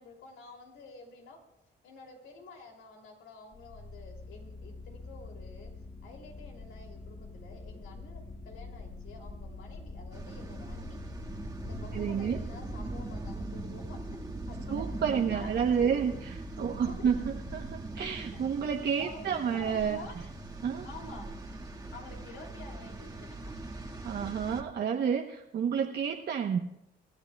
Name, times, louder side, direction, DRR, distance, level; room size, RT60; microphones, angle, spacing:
voice 1, 0.0-1.4 1.8-11.0 11.6-14.0 14.5-14.8 15.1-16.2 16.6-17.1 19.0-20.1 20.8-21.3 21.9-23.5, left 3 dB, 80° left, 2 dB, 2.9 m, -49 dB
sound 1, 3.5-15.8, left 3 dB, 45° left, 5.7 m, -46 dB
sound 2, 10.1-24.6, right 2 dB, 20° right, 1.7 m, -41 dB
voice 2, 11.9-12.4 14.7-20.0 20.6-20.9 24.0-26.6, right 7 dB, 55° right, 2 dB, 0.9 m, -30 dB
27.0 x 13.5 x 2.3 m, 0.85 s
cardioid pair, 90°, 20 cm